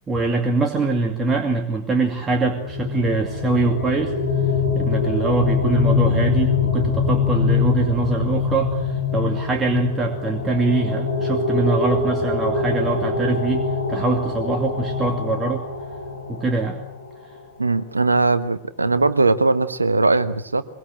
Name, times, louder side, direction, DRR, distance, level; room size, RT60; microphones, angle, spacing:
voice 1, 0.1-15.6 16.3-16.8, right 3 dB, 20° right, 3 dB, 2.5 m, -23 dB
sound 1, 2.3-17.0, left 4 dB, 75° left, 4.4 m, -23 dB
voice 2, 17.6-20.6, right 3 dB, 80° right, 13 dB, 1.3 m, -19 dB
23.5 x 23.0 x 7.9 m, 0.72 s
figure-of-eight pair, 90°, 0 cm